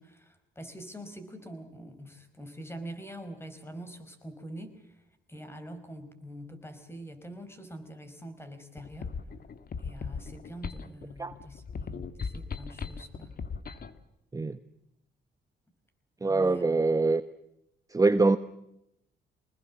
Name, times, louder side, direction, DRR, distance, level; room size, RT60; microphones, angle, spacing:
voice 1, 0.0-5.0 5.3-9.1 9.8-13.4 16.3-16.8, right 1 dB, 10° left, 9 dB, 4.9 m, -44 dB
sound 1, 8.8-14.0, left 5 dB, 50° left, 1.9 m, -38 dB
voice 2, 16.2-17.2 17.9-18.4, right 3 dB, 15° right, 11 dB, 1.0 m, -24 dB
25.5 x 20.5 x 7.3 m, 0.83 s
cardioid pair, 90°, 20 cm